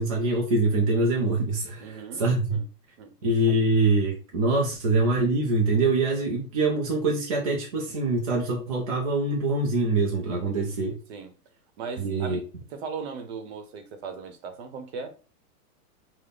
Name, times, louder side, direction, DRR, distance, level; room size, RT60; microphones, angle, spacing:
voice 1, 0.0-2.6 3.2-11.0 12.0-12.4, right 2 dB, 25° right, 0.4 m, -24 dB
voice 2, 1.8-2.7 3.0-3.1 4.6-4.7 11.1-11.3 11.8-12.4 12.7-15.1, right 5 dB, 45° right, 0.9 m, -38 dB
5.1 x 2.1 x 3.9 m
supercardioid pair, 160°, 46 cm